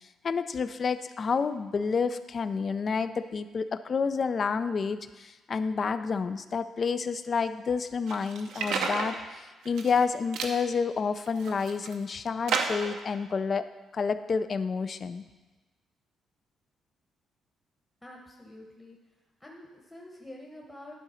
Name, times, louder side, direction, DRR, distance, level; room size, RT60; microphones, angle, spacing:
voice 1, 0.2-13.7 13.9-15.2, left 5 dB, 45° left, 12 dB, 0.4 m, -29 dB
sound 1, 8.1-9.1 9.6-10.0 10.3-10.6 11.2-11.9 12.5-13.0, right 5 dB, 85° right, 0.8 m, -31 dB
voice 2, 18.0-19.0 19.4-20.9, left 1 dB, 15° left, -2 dB, 1.0 m, -47 dB
11.0 x 3.8 x 5.7 m, 1.2 s
cardioid pair, 90°, 0 cm